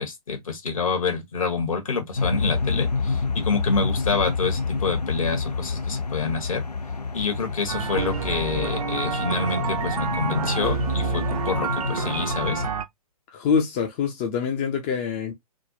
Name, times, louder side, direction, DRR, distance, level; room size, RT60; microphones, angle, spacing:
voice 1, 0.0-6.6 7.1-12.6, left 5 dB, 60° left, 1.1 m, -27 dB
sound 1, 2.2-12.7, left 4 dB, 90° left, 0.4 m, -28 dB
sound 2, 7.7-12.9, right 6 dB, 65° right, 0.5 m, -28 dB
voice 2, 13.3-15.3, left 6 dB, 20° left, 0.4 m, -25 dB
3.4 x 2.1 x 2.5 m
figure-of-eight pair, 120°, 20 cm